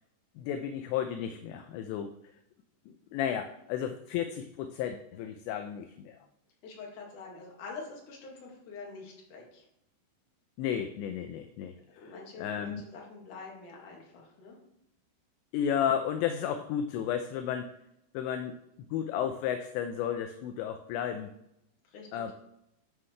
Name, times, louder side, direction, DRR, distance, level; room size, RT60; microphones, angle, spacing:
voice 1, 0.4-2.1 3.1-6.1 10.6-12.1 12.4-12.8 15.5-17.7 18.1-18.6 18.9-21.3 22.1-22.3, left 9 dB, 80° left, 8 dB, 2.6 m, -33 dB
voice 2, 6.6-9.6 12.0-14.6 21.8-22.3, left 4 dB, 50° left, -2 dB, 2.9 m, -46 dB
11.5 x 7.4 x 3.3 m, 0.82 s
omnidirectional pair, 5.5 m